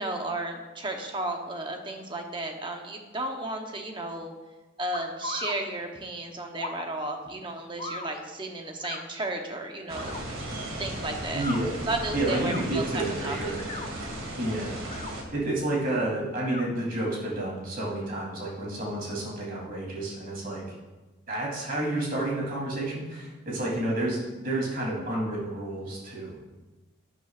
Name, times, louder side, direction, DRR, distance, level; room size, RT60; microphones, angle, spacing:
voice 1, 0.0-4.3 4.8-10.2 10.8-11.4 11.9-13.4, right 2 dB, 25° right, 3 dB, 0.9 m, -33 dB
sound 1, 4.9-5.6 6.5-6.9 7.8-8.1 8.8-9.0 9.9-10.2 11.3-11.6 12.3-12.6 13.5-13.9 14.8-15.1 16.4-16.7, left 3 dB, 30° left, 0.7 m, -37 dB
sound 2, 9.9-15.2, right 1 dB, 85° right, 1.9 m, -36 dB
voice 2, 11.3-11.8 12.1-13.7 14.4-14.8 15.3-20.6 21.3-26.4, right 1 dB, 45° right, -4 dB, 3.2 m, -30 dB
11.5 x 9.0 x 2.5 m, 1.2 s
head